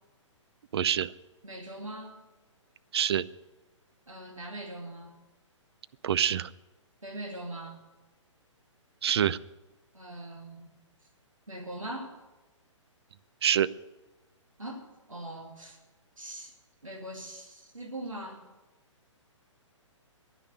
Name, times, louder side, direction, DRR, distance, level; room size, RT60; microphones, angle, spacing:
voice 1, 0.7-1.1 2.9-3.3 6.0-6.5 9.0-9.4 13.4-13.7, right 9 dB, 55° right, 16 dB, 0.5 m, -25 dB
voice 2, 1.4-2.2 4.1-5.1 7.0-7.8 9.9-10.7 11.5-12.2 14.6-15.8 16.2-16.5 16.8-18.5, right 1 dB, 90° right, 1 dB, 2.5 m, -41 dB
11.0 x 10.0 x 9.5 m, 1.1 s
figure-of-eight pair, 130°, 16 cm